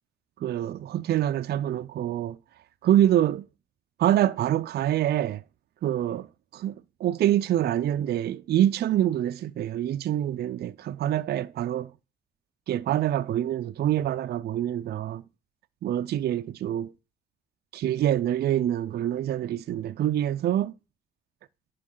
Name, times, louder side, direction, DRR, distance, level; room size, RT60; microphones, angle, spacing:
voice 1, 0.4-2.4 2.8-3.5 4.0-5.4 5.8-6.3 6.5-11.9 12.7-15.2 15.8-16.9 17.7-20.7, right 11 dB, 55° right, 0.4 m, -25 dB
10.5 x 4.6 x 3.8 m
cardioid pair, 90°, 20 cm